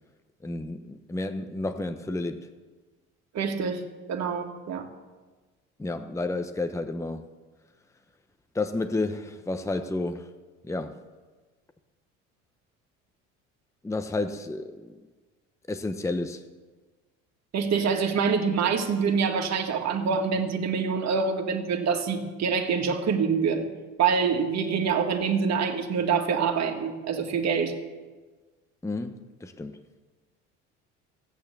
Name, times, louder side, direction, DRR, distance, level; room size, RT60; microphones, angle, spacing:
voice 1, 0.4-2.5 5.8-7.3 8.5-10.3 10.6-11.0 13.8-15.1 15.7-16.4 28.8-29.8, left 2 dB, 10° left, 9 dB, 0.9 m, -31 dB
voice 2, 3.3-3.8 4.1-4.9 17.5-23.7 24.0-27.7, right 6 dB, 45° right, 4 dB, 2.1 m, -25 dB
15.0 x 9.2 x 6.9 m, 1.3 s
hypercardioid pair, 65°, 36 cm